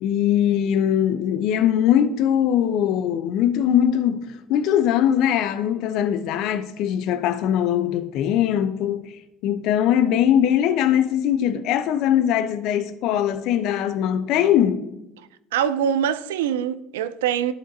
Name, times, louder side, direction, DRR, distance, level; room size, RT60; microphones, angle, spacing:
voice 1, 0.0-9.1 9.4-14.9, left 10 dB, 65° left, 0.6 m, -21 dB
voice 2, 15.5-17.5, right 9 dB, 80° right, 0.3 m, -23 dB
13.0 x 4.5 x 2.7 m
hypercardioid pair, 65°, 0 cm